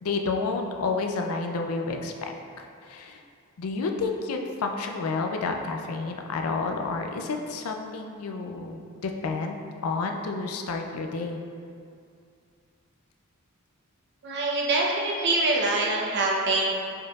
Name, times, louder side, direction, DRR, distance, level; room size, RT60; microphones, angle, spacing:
voice 1, 0.0-3.2 3.6-11.4, left 4 dB, 85° left, 3 dB, 0.4 m, -30 dB
voice 2, 14.2-16.7, right 2 dB, 55° right, -2 dB, 0.7 m, -24 dB
4.6 x 4.5 x 2.3 m, 2.4 s
head